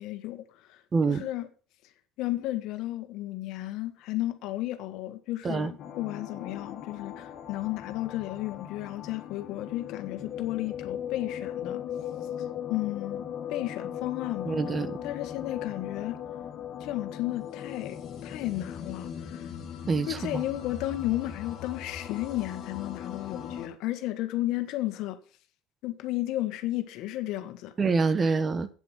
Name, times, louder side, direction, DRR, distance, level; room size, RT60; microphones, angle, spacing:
voice 1, 0.0-0.8 1.1-1.5 2.2-11.8 12.7-14.6 15.0-16.2 16.8-19.5 20.1-25.2 25.8-27.7, left 15 dB, 65° left, 1.6 m, -33 dB
voice 2, 0.9-1.3 5.4-5.7 14.4-15.0 19.9-20.4 27.8-28.7, right 4 dB, 25° right, 1.0 m, -26 dB
sound 1, 5.8-23.7, left 9 dB, 50° left, 2.4 m, -39 dB
9.0 x 7.9 x 6.2 m
supercardioid pair, 115°, 0 cm